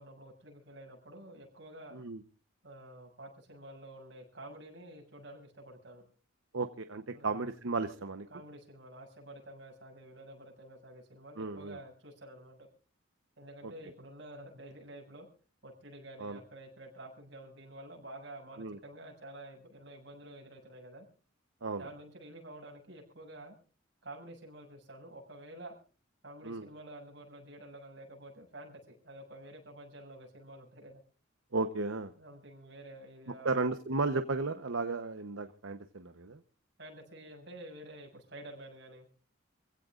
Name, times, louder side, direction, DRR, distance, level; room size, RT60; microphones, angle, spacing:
voice 1, 0.0-2.0 2.6-6.0 7.1-7.5 8.3-12.7 13.4-15.3 15.6-21.0 21.8-23.5 24.0-25.8 26.2-31.0 32.2-33.7 36.8-39.1, right 1 dB, 60° right, 0 dB, 6.9 m, -50 dB
voice 2, 1.9-2.2 6.5-8.3 11.4-11.8 13.6-13.7 16.2-16.4 18.6-18.8 21.6-21.9 26.4-26.7 31.5-32.1 33.4-36.4, right 3 dB, 85° right, 8 dB, 0.9 m, -34 dB
27.5 x 16.5 x 2.5 m, 0.38 s
head